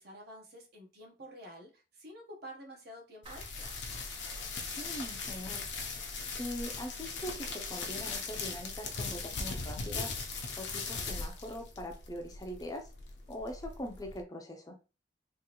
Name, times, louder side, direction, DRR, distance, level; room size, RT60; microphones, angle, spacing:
voice 1, 0.0-3.7, equal, 60° right, 1 dB, 1.1 m, -49 dB
sound 1, 3.2-14.2, left 4 dB, 80° left, 0.7 m, -39 dB
Clapping, 3.3-5.6, right 3 dB, 30° right, 0.5 m, -57 dB
voice 2, 4.8-5.7 6.4-10.2 10.6-12.9 13.3-14.8, equal, 20° left, 4 dB, 0.5 m, -42 dB
3.6 x 2.5 x 3.0 m, 0.31 s
head